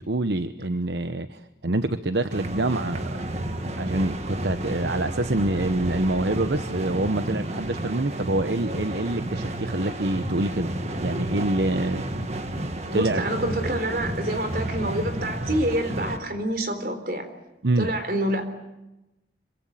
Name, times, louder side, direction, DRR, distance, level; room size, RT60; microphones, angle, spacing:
voice 1, 0.0-3.1 3.8-10.7 11.0-12.2 12.9-13.2 17.6-17.9, right 2 dB, 80° right, 10 dB, 1.0 m, -26 dB
sound 1, 2.3-16.2, right 1 dB, 35° right, 1.8 m, -31 dB
voice 2, 12.8-17.3 17.8-18.4, right 1 dB, 55° right, 8 dB, 3.9 m, -27 dB
26.0 x 23.5 x 9.1 m, 0.97 s
head